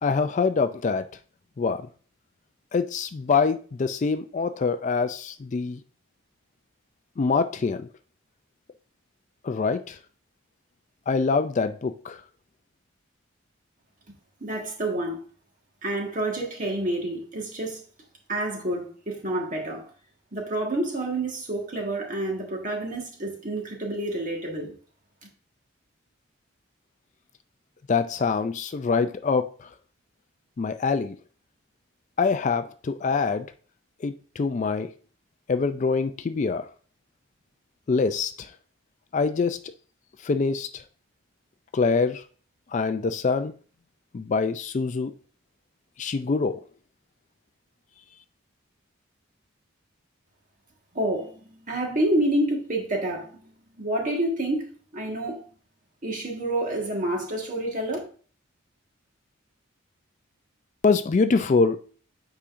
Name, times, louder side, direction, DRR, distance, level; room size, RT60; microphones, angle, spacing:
voice 1, 0.0-1.1 1.6-1.9 2.7-5.8 7.2-7.9 9.4-10.0 11.1-12.2 27.9-29.7 30.6-31.2 32.2-33.5 34.0-34.9 35.5-36.7 37.9-38.5 39.1-39.6 40.2-40.8 41.7-42.2 42.7-43.5 44.1-45.1 46.0-46.6 60.8-61.8, left 4 dB, 35° left, 0.3 m, -24 dB
voice 2, 14.4-15.2 15.8-17.8 18.3-19.8 20.3-24.7 50.9-55.4 56.0-58.0, right 1 dB, 40° right, 1.5 m, -28 dB
8.4 x 4.9 x 2.6 m
head